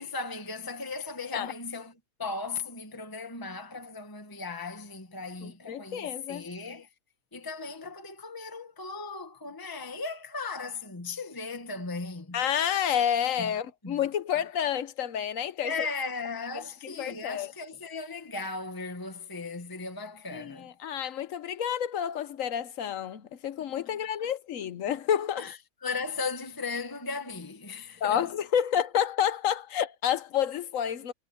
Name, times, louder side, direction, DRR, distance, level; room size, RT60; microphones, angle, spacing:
voice 1, 0.0-6.9 7.3-12.4 13.4-13.5 13.8-14.0 15.6-20.7 23.9-24.3 25.4-28.3, left 4 dB, 15° left, 1.5 m, -37 dB
voice 2, 5.4-6.5 12.3-15.7 17.0-17.5 20.3-25.5 28.0-31.1, left 9 dB, 70° left, 1.2 m, -29 dB
omnidirectional pair, 1.5 m